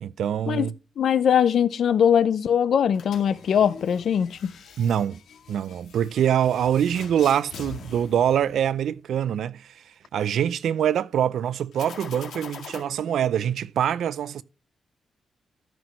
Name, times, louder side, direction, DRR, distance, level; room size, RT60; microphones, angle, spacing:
voice 1, 0.0-0.7 4.8-5.2 5.5-9.8 10.1-14.4, right 9 dB, 80° right, 0.5 m, -24 dB
voice 2, 1.0-4.5, left 8 dB, 65° left, 0.7 m, -21 dB
sound 1, 2.9-9.1 11.7-12.8, left 7 dB, 90° left, 2.2 m, -44 dB
14.0 x 6.2 x 3.1 m
wide cardioid pair, 150°, 0 cm